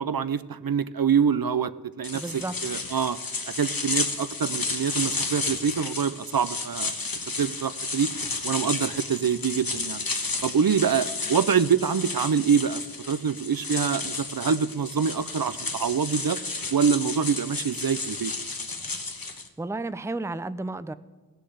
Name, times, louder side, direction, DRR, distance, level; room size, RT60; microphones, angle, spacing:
voice 1, 0.0-3.2 3.6-6.9 7.4-8.1 8.4-10.0 10.4-12.8 13.1-16.4 16.7-18.3, right 7 dB, 65° right, 14 dB, 0.6 m, -25 dB
sound 1, 2.0-19.5, left 3 dB, 60° left, 1.3 m, -32 dB
voice 2, 2.1-2.5 19.6-20.9, right 2 dB, 5° right, 14 dB, 0.5 m, -32 dB
16.0 x 6.8 x 7.9 m, 1.3 s
wide cardioid pair, 40°, 39 cm